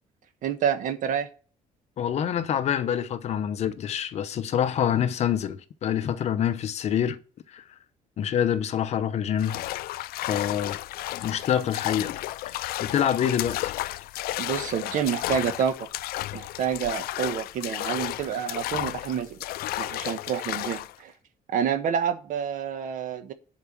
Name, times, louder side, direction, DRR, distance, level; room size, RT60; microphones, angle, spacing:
voice 1, 0.4-1.3 14.4-15.9 16.3-19.4 19.8-21.1 21.5-23.3, right 8 dB, 60° right, 1.3 m, -28 dB
voice 2, 2.0-7.2 7.5-7.6 8.2-9.6 10.3-10.8 11.2-12.1 12.8-13.7, left 9 dB, 45° left, 0.8 m, -26 dB
sound 1, 9.4-21.0, left 16 dB, 85° left, 0.4 m, -33 dB
10.5 x 4.7 x 7.3 m
cardioid pair, 180°, 15 cm